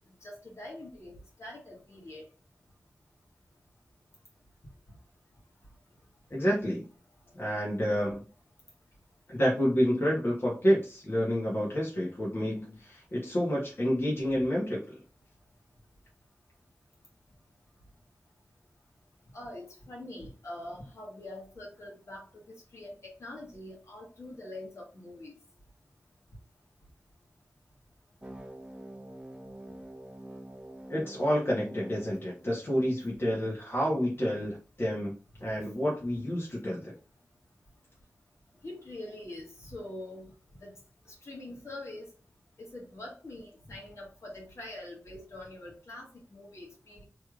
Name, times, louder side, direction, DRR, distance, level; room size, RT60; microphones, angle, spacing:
voice 1, 0.2-2.3 4.9-5.0 14.3-14.4 19.3-25.3 38.6-40.3 40.6-40.7 41.1-42.1 42.6-47.0, left 1 dB, 65° left, -2 dB, 1.7 m, -44 dB
voice 2, 6.3-6.8 7.3-8.2 9.3-15.0 30.9-35.1 35.4-36.9, equal, 45° left, -5 dB, 1.3 m, -29 dB
sound 1, 28.2-33.2, right 1 dB, 20° right, 0.8 m, -46 dB
3.3 x 3.2 x 2.4 m, 0.34 s
wide cardioid pair, 60°, 5 cm